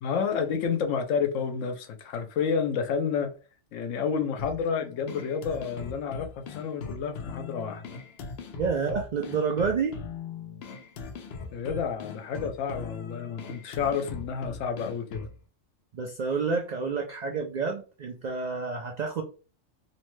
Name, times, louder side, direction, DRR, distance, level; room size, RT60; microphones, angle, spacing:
voice 1, 0.0-3.3 3.7-7.9 11.5-15.2, left 6 dB, 90° left, 1.0 m, -30 dB
sound 1, 4.4-15.4, left 5 dB, 65° left, 0.7 m, -40 dB
voice 2, 8.5-10.0 15.9-19.2, right 5 dB, 90° right, 0.3 m, -29 dB
2.9 x 2.1 x 3.0 m
omnidirectional pair, 1.3 m